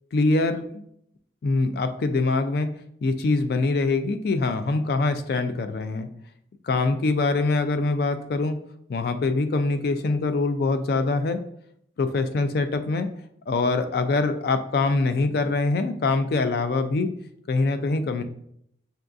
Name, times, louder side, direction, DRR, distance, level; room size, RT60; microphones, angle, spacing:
voice 1, 0.1-0.6 1.4-2.7 3.0-6.1 6.6-8.6 8.9-11.4 12.0-13.1 13.5-17.1 17.5-18.2, left 3 dB, 55° left, 9 dB, 0.3 m, -24 dB
5.5 x 2.3 x 2.5 m, 0.71 s
head